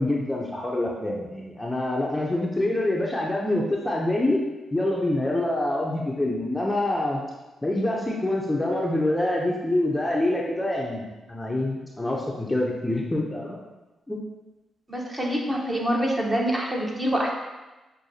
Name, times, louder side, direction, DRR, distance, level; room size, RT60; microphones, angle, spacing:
voice 1, 0.0-4.4 4.7-7.2 7.6-13.6 14.1-14.2, left 1 dB, 15° left, -2 dB, 0.6 m, -26 dB
voice 2, 14.9-17.3, equal, 20° right, -2 dB, 1.0 m, -25 dB
6.2 x 2.2 x 2.8 m, 1.1 s
supercardioid pair, 55°, 0 cm